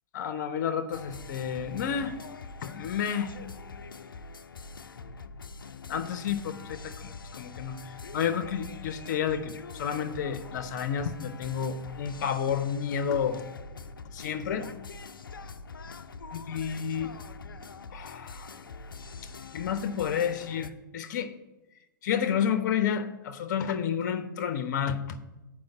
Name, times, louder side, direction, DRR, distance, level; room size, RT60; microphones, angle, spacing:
voice 1, 0.1-2.1 2.6-3.3 5.9-13.4 14.1-14.7 16.3-17.1 17.9-18.6 19.5-21.3 22.0-25.2, left 8 dB, 60° left, 12 dB, 0.8 m, -30 dB
sound 1, 0.9-20.7, left 4 dB, 85° left, 0.5 m, -44 dB
7.7 x 4.8 x 7.1 m, 1.0 s
hypercardioid pair, 110°, 11 cm